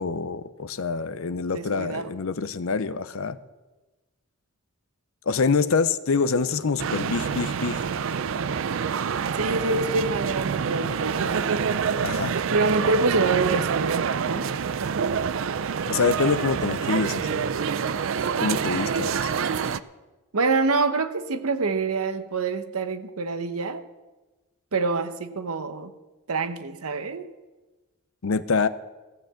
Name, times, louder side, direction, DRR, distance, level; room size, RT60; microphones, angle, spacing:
voice 1, 0.0-3.4 5.3-7.8 12.0-12.4 15.9-17.5 18.4-19.3 28.2-28.7, left 4 dB, 65° left, 14 dB, 0.6 m, -25 dB
voice 2, 1.5-2.1 9.4-11.5 12.5-14.5 20.3-23.8 24.7-25.9 26.3-27.3, right 3 dB, 80° right, 10 dB, 0.9 m, -26 dB
sound 1, 6.8-19.8, right 6 dB, 60° right, 0.4 m, -27 dB
15.0 x 6.8 x 7.6 m, 1.2 s
head